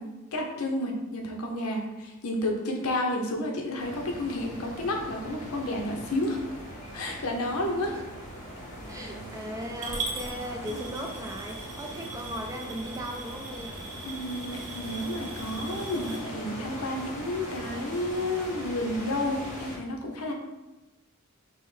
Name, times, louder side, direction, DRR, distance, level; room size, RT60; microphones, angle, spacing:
voice 1, 0.0-6.4 6.9-8.0 8.9-9.1 10.7-10.8 14.0-20.3, left 1 dB, 70° left, 2 dB, 0.7 m, -31 dB
sound 1, 3.8-19.8, equal, 35° left, 0.9 m, -41 dB
voice 2, 8.9-13.8, equal, 15° right, 1 dB, 0.4 m, -37 dB
Coin (dropping) / Glass, 9.8-16.2, right 3 dB, 85° right, 1.0 m, -40 dB
5.4 x 2.1 x 3.2 m, 1.1 s
head